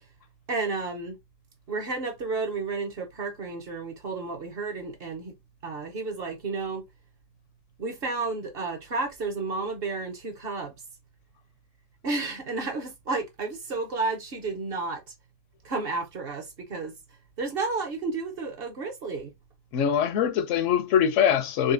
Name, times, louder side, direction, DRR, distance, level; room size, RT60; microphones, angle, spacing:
voice 1, 0.5-1.2 1.7-5.3 5.6-6.8 7.8-10.7 12.0-15.0 15.6-16.9 17.4-19.3, right 3 dB, 50° right, 1.0 m, -31 dB
voice 2, 19.7-21.7, left 8 dB, 75° left, 0.9 m, -23 dB
4.0 x 3.6 x 2.5 m
omnidirectional pair, 1.3 m